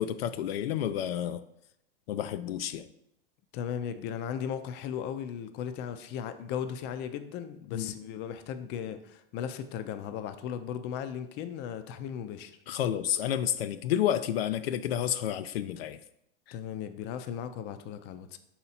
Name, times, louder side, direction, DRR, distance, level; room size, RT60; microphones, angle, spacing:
voice 1, 0.0-1.4 2.1-2.9 7.7-8.0 12.7-16.0, left 10 dB, 85° left, 11 dB, 0.5 m, -30 dB
voice 2, 3.5-12.5 16.5-18.4, left 8 dB, 35° left, 10 dB, 0.5 m, -36 dB
5.6 x 4.3 x 4.1 m, 0.78 s
hypercardioid pair, 125°, 29 cm